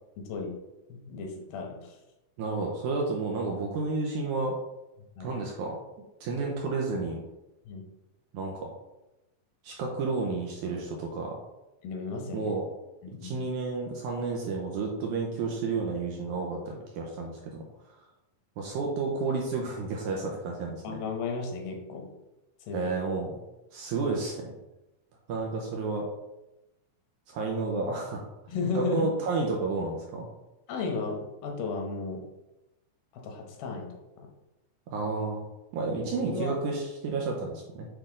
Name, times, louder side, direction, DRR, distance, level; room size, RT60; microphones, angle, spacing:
voice 1, 0.2-0.5 0.9-2.0 5.2-5.3 7.7-7.9 11.8-12.6 13.0-13.4 20.8-22.1 22.6-23.0 28.5-29.1 30.7-32.3 33.1-34.3 35.8-36.6, left 4 dB, 85° left, 2 dB, 2.8 m, -34 dB
voice 2, 2.4-4.5 5.2-5.8 6.2-7.2 8.3-8.7 9.6-11.4 12.3-12.7 13.2-17.6 18.6-21.0 22.7-23.3 23.7-24.5 25.3-26.0 27.3-28.3 28.8-30.3 34.9-35.4 35.7-37.9, right 3 dB, 75° right, 0 dB, 1.9 m, -31 dB
8.1 x 3.3 x 3.7 m, 0.96 s
omnidirectional pair, 4.1 m